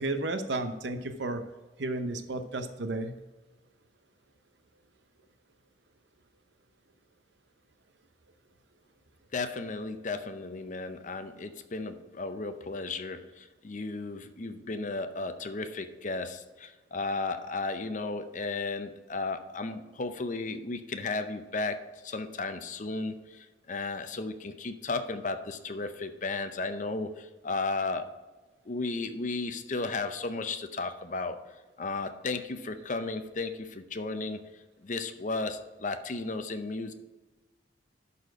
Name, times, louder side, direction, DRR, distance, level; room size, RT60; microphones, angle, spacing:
voice 1, 0.0-1.4 1.8-3.1, right 2 dB, 70° right, 0.8 m, -32 dB
voice 2, 9.3-28.1 28.7-31.4 31.8-36.9, left 3 dB, 45° left, 0.6 m, -34 dB
11.5 x 4.3 x 4.7 m
head